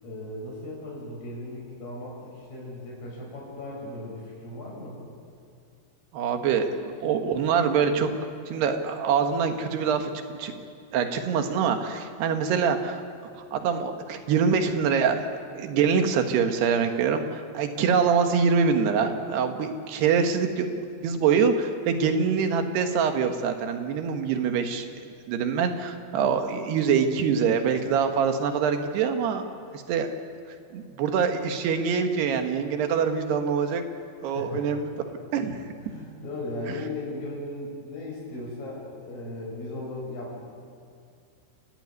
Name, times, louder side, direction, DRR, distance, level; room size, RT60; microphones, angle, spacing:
voice 1, 0.0-5.0 34.3-34.7 35.8-40.4, left 2 dB, 45° left, -3 dB, 7.6 m, -37 dB
voice 2, 6.1-8.1 8.5-10.5 10.9-13.0 13.5-15.2 15.5-24.9 25.3-29.5 29.7-30.1 30.7-33.8 34.2-34.9 35.3-35.6, right 6 dB, 85° right, 6 dB, 3.6 m, -24 dB
29.0 x 14.5 x 9.6 m, 2.3 s
omnidirectional pair, 4.6 m